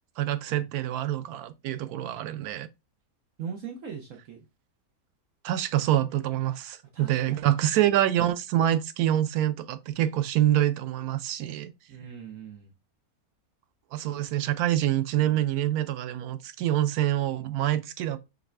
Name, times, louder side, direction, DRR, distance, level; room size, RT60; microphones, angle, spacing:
voice 1, 0.2-2.7 5.4-11.7 13.9-18.2, right 12 dB, 90° right, 1.1 m, -26 dB
voice 2, 3.4-4.4 6.9-7.5 11.9-12.7, right 7 dB, 65° right, 1.1 m, -40 dB
4.8 x 3.4 x 3.2 m
omnidirectional pair, 1.6 m